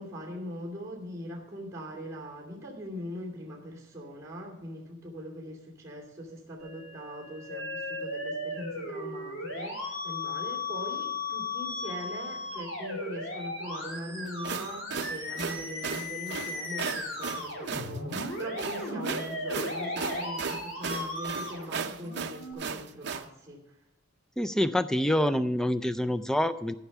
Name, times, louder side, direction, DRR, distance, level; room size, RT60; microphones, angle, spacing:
voice 1, 0.0-23.8, equal, 15° right, -3 dB, 2.5 m, -41 dB
Musical instrument, 6.6-22.5, left 2 dB, 70° left, 3.3 m, -36 dB
sound 1, 14.3-23.3, right 5 dB, 50° right, 0.6 m, -36 dB
voice 2, 24.4-26.8, left 1 dB, 5° left, 13 dB, 0.3 m, -26 dB
14.5 x 5.7 x 6.6 m, 0.89 s
head